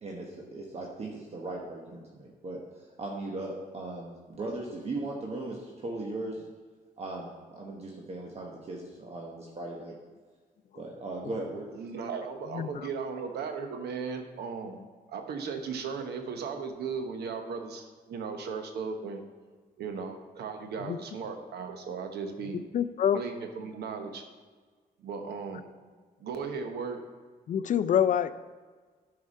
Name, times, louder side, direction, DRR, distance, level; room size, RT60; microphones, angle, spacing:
voice 1, 0.0-2.6 3.0-6.4 7.0-10.0 10.7-11.7, right 2 dB, 40° right, -1 dB, 1.2 m, -38 dB
voice 2, 11.7-19.2 19.8-22.6 23.1-24.2 25.0-25.7 26.2-27.0, right 5 dB, 90° right, 5 dB, 1.0 m, -36 dB
voice 3, 12.5-12.9 20.8-21.0 22.7-23.2 27.5-28.3, left 9 dB, 50° left, 13 dB, 0.4 m, -26 dB
9.7 x 4.8 x 5.4 m, 1.5 s
cardioid pair, 110°, 16 cm